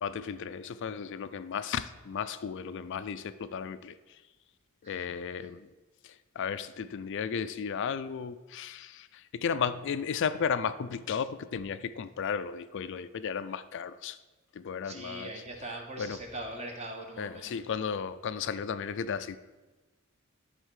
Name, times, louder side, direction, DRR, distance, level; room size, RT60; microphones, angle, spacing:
voice 1, 0.0-4.2 4.8-5.7 6.0-14.2 14.5-15.3 16.0-16.2 17.2-19.4, left 6 dB, 60° left, 13 dB, 0.4 m, -34 dB
voice 2, 14.8-17.5, right 1 dB, 30° right, 2 dB, 1.4 m, -41 dB
11.0 x 4.1 x 6.4 m, 1.2 s
head